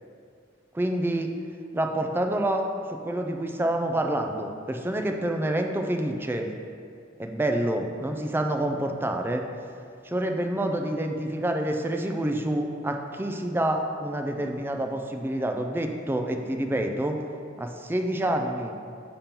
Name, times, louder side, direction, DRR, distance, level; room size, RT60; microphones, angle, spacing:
voice 1, 0.7-1.3 1.7-2.7 3.0-6.5 7.2-9.4 10.0-17.2 17.6-18.7, right 1 dB, 10° right, 3 dB, 0.3 m, -27 dB
6.9 x 2.9 x 5.2 m, 2.3 s
head